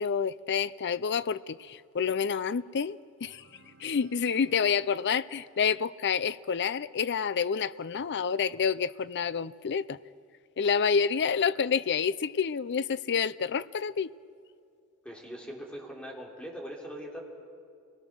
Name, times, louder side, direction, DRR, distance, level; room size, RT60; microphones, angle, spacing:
voice 1, 0.0-3.4 3.8-10.0 10.6-14.1, left 6 dB, 50° left, 0.5 m, -28 dB
sound 1, 3.3-6.1, right 1 dB, 60° right, 2.1 m, -60 dB
voice 2, 15.0-17.2, equal, 5° left, 3.9 m, -41 dB
30.0 x 20.5 x 6.3 m
head